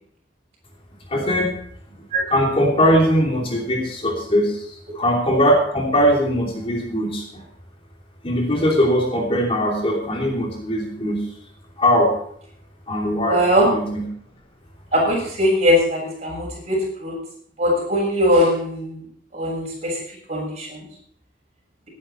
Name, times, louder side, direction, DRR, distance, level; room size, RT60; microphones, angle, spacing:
voice 1, 1.1-1.5 2.3-7.4 8.2-11.2 11.8-12.1 12.9-13.4 13.7-14.0, equal, 30° left, 0 dB, 2.9 m, -20 dB
voice 2, 13.2-13.7 14.9-17.1 17.6-19.0 19.3-19.9 20.3-20.8, equal, 40° right, -3 dB, 7.2 m, -20 dB
18.0 x 9.9 x 4.5 m, 0.64 s
head